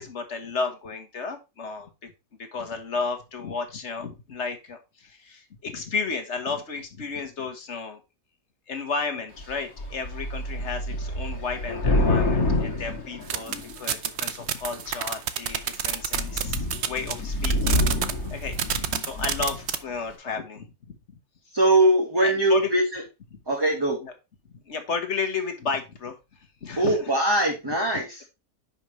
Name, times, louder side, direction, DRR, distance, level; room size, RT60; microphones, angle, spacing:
voice 1, 0.0-2.1 2.5-8.0 8.7-17.9 18.2-21.2 22.2-22.7 23.3-23.4 24.0-24.1 24.5-27.1 27.9-28.0, left 4 dB, 50° left, 6 dB, 1.7 m, -33 dB
Thunder / Rain, 9.4-9.5 9.8-13.9 14.6-15.1 15.5-15.6 15.9-19.7, left 2 dB, 75° left, 2.5 m, -27 dB
sound 1, 13.3-17.1 17.4-18.1 18.5-19.8, right 9 dB, 55° right, 0.9 m, -28 dB
voice 2, 21.5-22.8 23.5-24.0 26.8-28.1, right 1 dB, 15° right, -1 dB, 1.4 m, -21 dB
10.5 x 5.7 x 3.1 m, 0.26 s
omnidirectional pair, 1.5 m